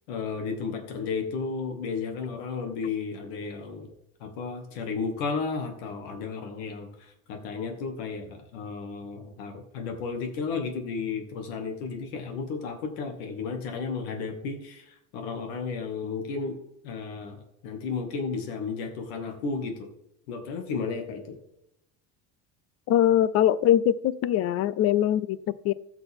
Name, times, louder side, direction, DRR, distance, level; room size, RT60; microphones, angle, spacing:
voice 1, 0.1-3.9 4.2-16.6 16.8-19.9 20.3-21.4, left 5 dB, 90° left, 4 dB, 2.1 m, -33 dB
voice 2, 22.9-25.7, left 11 dB, 55° left, 18 dB, 0.6 m, -22 dB
15.0 x 6.0 x 3.6 m, 0.84 s
cardioid pair, 115°, 30 cm